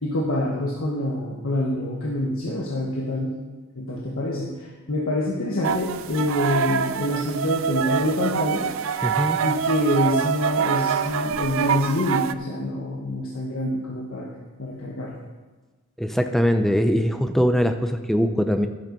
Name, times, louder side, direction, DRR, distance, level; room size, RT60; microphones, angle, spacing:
voice 1, 0.0-3.3 3.8-8.7 9.4-14.3 14.6-15.2, left 1 dB, 70° left, -3 dB, 1.5 m, -26 dB
sound 1, 5.6-12.3, right 7 dB, 70° right, 0.4 m, -25 dB
voice 2, 9.0-9.4 16.0-18.7, equal, ahead, 7 dB, 0.6 m, -21 dB
11.0 x 8.8 x 5.3 m, 1.3 s
head